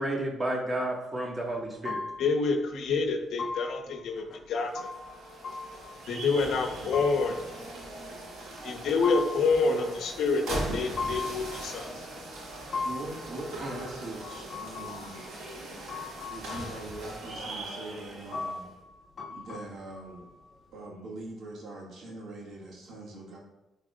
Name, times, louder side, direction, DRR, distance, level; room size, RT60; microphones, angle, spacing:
voice 1, 0.0-2.0 13.6-13.7, right 1 dB, 25° right, 0 dB, 1.7 m, -31 dB
sound 1, 1.5-1.6 1.8-2.5 2.9-3.0 3.3-6.6 6.9-8.3 8.8-10.3 11.0-12.0 12.5-17.1 17.3-17.4 17.9-18.0 18.3-20.7, left 4 dB, 50° left, 1.2 m, -39 dB
voice 2, 2.2-4.9 6.1-7.4 8.6-12.1, left 4 dB, 75° left, 3 dB, 1.0 m, -28 dB
sound 2, 4.6-18.7, right 2 dB, 85° right, 2.1 m, -40 dB
voice 3, 9.6-9.9 12.8-15.3 16.3-18.7 19.3-20.3 20.7-23.4, right 2 dB, 70° right, -3 dB, 2.2 m, -42 dB
10.5 x 4.0 x 2.5 m, 0.96 s
cardioid pair, 90°, 0 cm